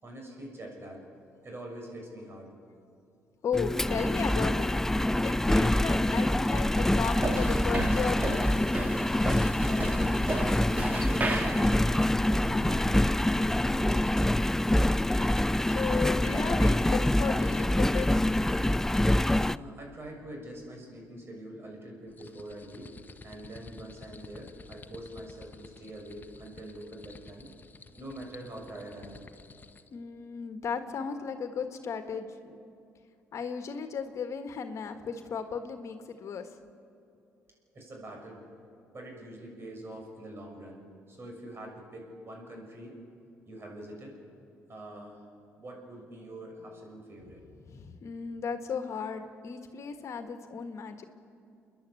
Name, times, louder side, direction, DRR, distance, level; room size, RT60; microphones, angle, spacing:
voice 1, 0.0-1.0 1.4-2.5 9.5-11.7 12.2-14.4 19.3-22.9 23.2-27.5 28.0-29.3 37.7-38.4 38.9-42.9 43.5-44.1 44.7-45.2 45.6-47.4, right 1 dB, 45° right, 1 dB, 6.3 m, -44 dB
voice 2, 3.4-4.7 5.2-8.4 15.7-18.1 29.9-32.6 33.3-36.5 47.6-51.0, left 6 dB, 55° left, 8 dB, 1.6 m, -35 dB
Engine, 3.5-19.6, left 1 dB, 5° left, 0.4 m, -26 dB
sound 1, 7.0-13.0, right 2 dB, 25° right, 2.0 m, -35 dB
sound 2, 22.1-29.9, left 4 dB, 30° left, 1.1 m, -51 dB
29.0 x 11.0 x 8.3 m, 2.6 s
supercardioid pair, 60°, 6 cm